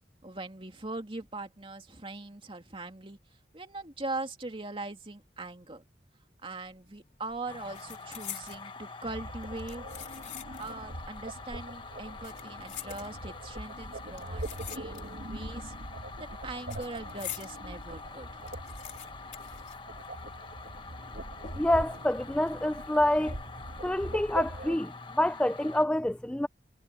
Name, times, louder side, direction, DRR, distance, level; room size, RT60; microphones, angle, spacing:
voice 1, 0.2-3.2 3.5-5.8 6.4-9.9 10.6-15.8 16.2-18.5, right 2 dB, 30° right, 2.5 m, -41 dB
sound 1, 6.7-7.0 7.3-8.7 9.4-10.8 11.1-11.2 12.0-13.5 14.1-15.3 15.6-17.6 18.0-18.1 18.3-20.4 20.6-20.7 21.4-21.9 22.3-22.5, left 10 dB, 45° left, 4.0 m, -45 dB
sound 2, 7.5-25.8, left 4 dB, 30° left, 1.4 m, -46 dB
sound 3, 9.0-24.8, right 1 dB, 60° right, 1.8 m, -43 dB
voice 2, 21.6-23.3 23.8-26.5, left 1 dB, 5° left, 0.4 m, -27 dB
head